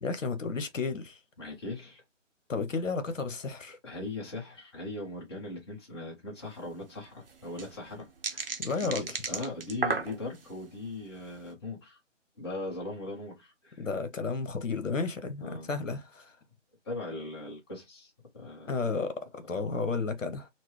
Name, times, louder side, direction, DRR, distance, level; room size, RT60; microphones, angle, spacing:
voice 1, 0.0-1.2 2.5-3.8 8.6-9.2 13.8-16.4 18.7-20.5, left 4 dB, 80° left, 1.0 m, -32 dB
voice 2, 1.4-2.0 3.8-8.5 8.8-12.0 12.4-13.9 15.4-15.7 16.8-18.7, left 2 dB, 20° left, 1.1 m, -39 dB
sound 1, 6.4-6.5 6.7-6.8 7.3-10.5 11.1-11.4, right 4 dB, 45° right, 0.8 m, -34 dB
4.3 x 2.1 x 3.1 m
figure-of-eight pair, 160°, 38 cm